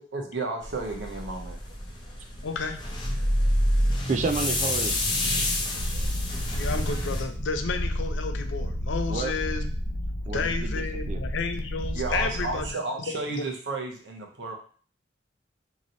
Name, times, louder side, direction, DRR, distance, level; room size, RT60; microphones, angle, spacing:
voice 1, 0.1-1.8 5.5-6.0 11.9-14.5, right 3 dB, 75° right, 2 dB, 0.8 m, -33 dB
sound 1, 0.6-7.2, left 1 dB, 25° left, 0.7 m, -28 dB
voice 2, 2.4-2.8 6.6-9.7 10.3-12.7 13.1-13.4, left 4 dB, 85° left, 7 dB, 0.5 m, -31 dB
voice 3, 4.1-4.9 9.1-9.5 10.3-11.2, right 4 dB, 40° right, 8 dB, 0.3 m, -31 dB
Purr, 5.7-12.7, equal, 45° left, 1.1 m, -31 dB
3.0 x 2.8 x 3.9 m, 0.43 s
head